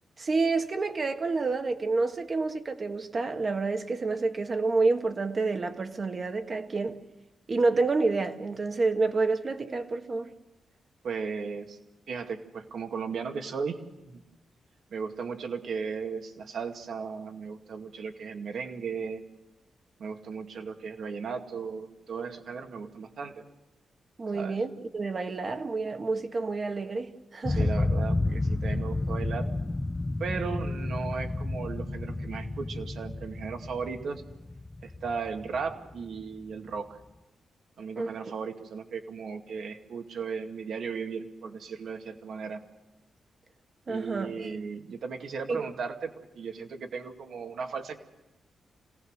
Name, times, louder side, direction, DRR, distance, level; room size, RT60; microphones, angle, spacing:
voice 1, 0.2-7.0 7.5-10.3 24.2-27.7 37.9-38.2 43.9-44.6 45.5-45.7, right 3 dB, 30° right, 1.5 m, -28 dB
voice 2, 11.0-11.8 12.1-13.8 14.1-14.2 14.9-19.2 20.0-23.5 24.3-24.6 27.5-29.5 30.2-34.2 34.8-37.0 37.8-42.6 43.9-48.0, right 5 dB, 60° right, 2.3 m, -36 dB
sound 1, 27.4-36.3, left 2 dB, 15° left, 0.7 m, -31 dB
26.5 x 18.5 x 6.6 m
wide cardioid pair, 160°, 0 cm